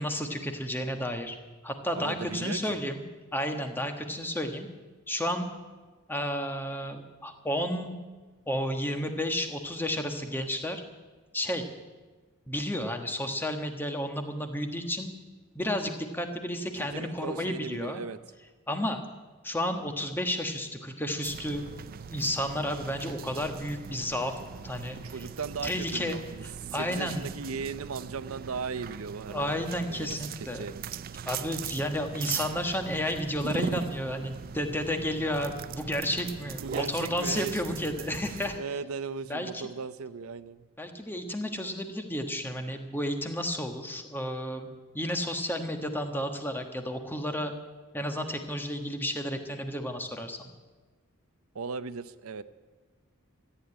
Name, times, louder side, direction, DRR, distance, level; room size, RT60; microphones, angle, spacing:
voice 1, 0.0-1.4 1.6-3.0 3.3-4.7 5.1-5.5 6.1-8.0 8.5-10.8 11.3-11.7 12.5-15.1 15.5-18.0 18.7-19.0 19.4-21.7 22.0-24.3 24.6-25.0 25.6-26.2 26.4-27.3 29.3-30.7 31.2-38.6 39.3-39.6 40.8-44.7 44.9-47.5 47.9-50.5, left 1 dB, 10° left, 5 dB, 1.4 m, -32 dB
voice 2, 1.9-2.8 16.7-18.2 25.0-30.8 36.6-37.9 38.6-40.6 51.5-52.4, right 5 dB, 85° right, 13 dB, 0.7 m, -37 dB
sound 1, 21.2-38.6, right 6 dB, 45° right, 0.4 m, -40 dB
14.0 x 9.9 x 9.7 m, 1.3 s
head